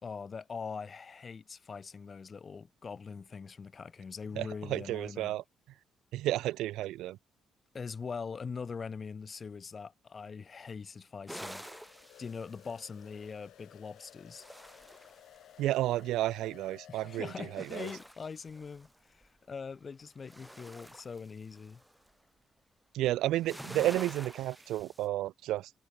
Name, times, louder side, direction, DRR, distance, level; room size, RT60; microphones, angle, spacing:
voice 1, 0.0-5.4 7.7-11.6 12.2-14.4 16.9-21.8, left 5 dB, 40° left, 4.2 m, -42 dB
voice 2, 4.4-5.4 6.1-7.2 15.6-17.3 17.5-17.9 22.9-25.7, right 15 dB, 90° right, 0.6 m, -31 dB
sound 1, 11.3-13.2 14.0-15.7 17.4-19.3 19.7-22.1 23.3-25.1, equal, 5° right, 1.9 m, -48 dB
sound 2, 11.6-17.8, left 12 dB, 75° left, 5.8 m, -56 dB
cardioid pair, 90°, 0 cm